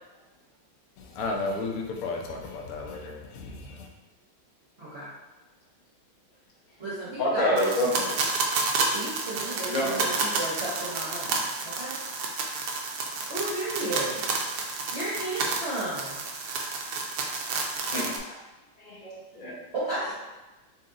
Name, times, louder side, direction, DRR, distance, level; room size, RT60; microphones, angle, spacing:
voice 1, 1.0-3.9, left 3 dB, 85° left, 1 dB, 0.7 m, -33 dB
voice 2, 4.8-5.1 6.8-8.2 8.9-12.0 13.3-14.3 14.9-16.2 19.7-20.1, right 2 dB, 50° right, -9 dB, 0.8 m, -34 dB
voice 3, 7.2-7.9 9.7-10.0 10.3-10.4 17.9-18.4 18.8-19.6, left 1 dB, 40° left, -6 dB, 0.7 m, -27 dB
sound 1, 7.6-18.2, right 3 dB, 80° right, 0.8 m, -30 dB
4.2 x 2.7 x 3.7 m, 1.1 s
omnidirectional pair, 2.3 m